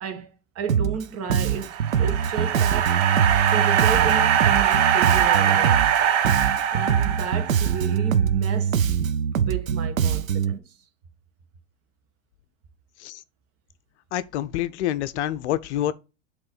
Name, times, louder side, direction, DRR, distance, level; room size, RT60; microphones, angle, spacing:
voice 1, 0.0-3.0 3.5-6.1 6.7-8.8 9.4-10.7, right 7 dB, 35° right, 1.4 m, -33 dB
Bass guitar, 0.7-1.0 1.3-6.0 6.2-10.6, right 8 dB, 85° right, 0.6 m, -23 dB
sound 1, 1.5-7.9, right 9 dB, 60° right, 1.1 m, -22 dB
voice 2, 14.1-15.9, left 12 dB, 60° left, 0.6 m, -27 dB
7.9 x 3.2 x 5.4 m
hypercardioid pair, 90°, 40 cm